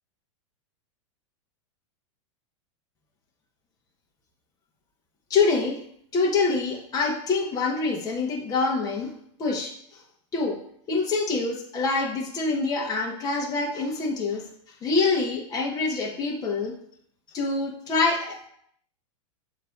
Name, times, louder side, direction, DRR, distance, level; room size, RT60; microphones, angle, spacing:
voice 1, 5.3-5.8 6.1-9.1 9.4-9.7 10.3-10.6 10.9-14.4 14.8-16.7 17.3-18.5, left 4 dB, 25° left, -2 dB, 1.6 m, -25 dB
7.9 x 3.3 x 6.1 m, 0.67 s
hypercardioid pair, 130°, 16 cm